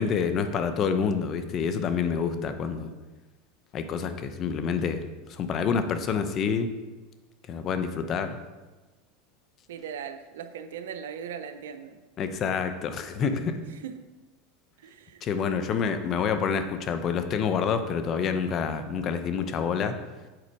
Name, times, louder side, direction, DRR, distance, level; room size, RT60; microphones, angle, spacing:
voice 1, 0.0-2.9 3.7-5.0 5.3-6.7 7.5-8.4 12.2-13.6 15.2-19.9, left 6 dB, 40° left, 9 dB, 0.7 m, -27 dB
voice 2, 9.7-12.0 13.8-14.0 14.8-15.2, right 7 dB, 85° right, 8 dB, 0.5 m, -39 dB
7.8 x 4.1 x 4.7 m, 1.2 s
supercardioid pair, 110°, 0 cm